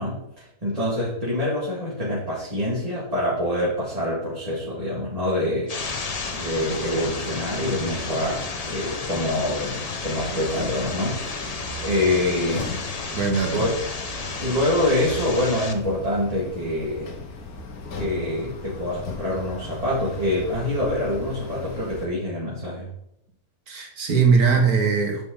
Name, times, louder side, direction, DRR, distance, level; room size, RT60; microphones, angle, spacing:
voice 1, 0.0-5.7 6.3-12.8 13.5-13.8 14.4-17.1 17.9-22.9, left 1 dB, 25° right, -8 dB, 2.3 m, -26 dB
sound 1, 5.7-15.7, left 3 dB, 35° left, 0.6 m, -33 dB
sound 2, 5.8-22.1, left 3 dB, 75° left, 1.6 m, -37 dB
voice 2, 13.1-13.7 23.7-25.3, right 5 dB, 80° right, 1 dB, 2.1 m, -20 dB
9.7 x 5.3 x 3.9 m, 0.78 s
omnidirectional pair, 1.6 m